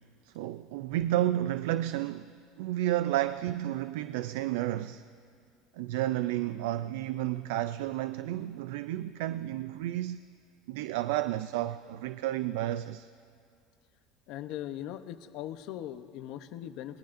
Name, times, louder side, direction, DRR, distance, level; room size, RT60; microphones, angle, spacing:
voice 1, 0.2-5.0 5.7-10.3 10.7-13.1, right 14 dB, 80° right, 0.3 m, -31 dB
voice 2, 14.3-17.0, left 12 dB, 55° left, 0.7 m, -40 dB
25.5 x 21.0 x 2.6 m
cardioid pair, 155°, 0 cm